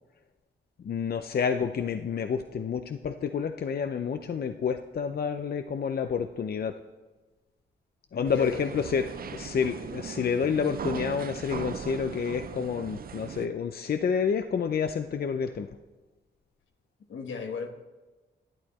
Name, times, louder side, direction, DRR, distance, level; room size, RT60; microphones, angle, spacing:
voice 1, 0.8-6.7 8.1-9.0 9.3-15.7, left 6 dB, 50° left, 8 dB, 0.6 m, -29 dB
voice 2, 8.1-9.4 17.1-17.7, left 5 dB, 75° left, 5 dB, 1.3 m, -38 dB
sound 1, 8.3-13.5, right 7 dB, 50° right, 0.5 m, -39 dB
12.0 x 8.7 x 4.2 m, 1.2 s
cardioid pair, 65°, 20 cm